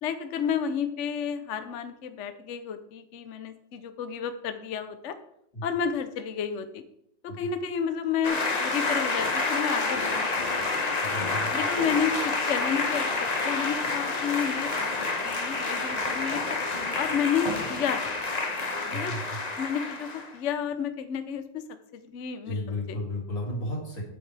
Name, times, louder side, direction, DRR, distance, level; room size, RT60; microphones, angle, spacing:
voice 1, 0.0-5.2 5.6-6.8 7.2-10.7 11.4-14.9 15.2-16.4 17.0-18.1 18.9-19.2 19.6-21.6 21.9-23.0, left 7 dB, 55° left, 9 dB, 0.9 m, -31 dB
sound 1, 8.2-20.3, left 3 dB, 30° left, 0.9 m, -28 dB
voice 2, 11.0-11.5 18.9-19.4 22.5-24.0, left 1 dB, 70° left, -2 dB, 3.5 m, -33 dB
12.0 x 9.5 x 3.4 m, 0.74 s
omnidirectional pair, 2.0 m